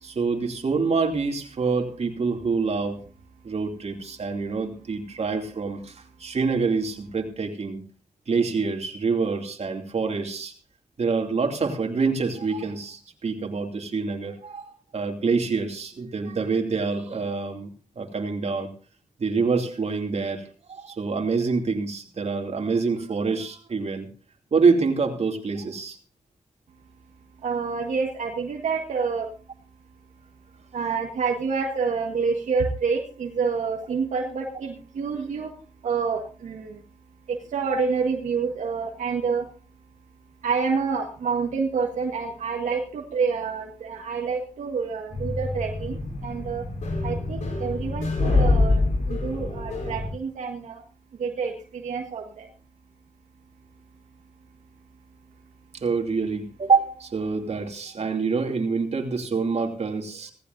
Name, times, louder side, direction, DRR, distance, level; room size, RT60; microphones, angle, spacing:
voice 1, 0.0-3.0 3.4-7.8 8.3-10.5 11.0-17.7 18.0-18.7 19.2-24.1 24.5-26.0 55.7-60.3, right 4 dB, 60° right, 4 dB, 2.7 m, -26 dB
voice 2, 27.4-29.3 30.7-35.5 35.8-36.8 37.3-39.5 40.4-46.7 47.0-50.8 51.2-52.5, right 5 dB, 90° right, 1 dB, 1.7 m, -28 dB
sound 1, 45.1-50.1, left 2 dB, 75° left, 4.5 m, -25 dB
17.5 x 15.5 x 2.7 m, 0.37 s
cardioid pair, 50°, 12 cm